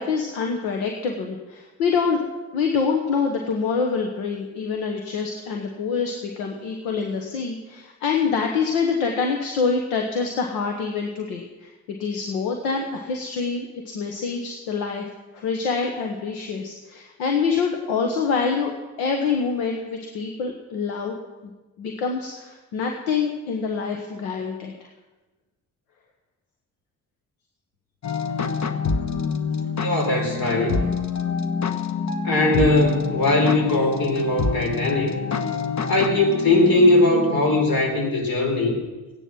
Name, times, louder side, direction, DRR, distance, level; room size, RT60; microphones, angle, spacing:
voice 1, 0.0-2.2 2.5-21.2 21.8-24.9, left 5 dB, 85° left, 2 dB, 1.2 m, -26 dB
sound 1, 28.0-37.9, left 5 dB, 45° left, 1.3 m, -27 dB
voice 2, 29.8-30.8 32.2-35.1 35.9-38.8, left 2 dB, 65° left, 0 dB, 4.6 m, -20 dB
15.0 x 10.0 x 6.1 m, 1.2 s
hypercardioid pair, 45°, 38 cm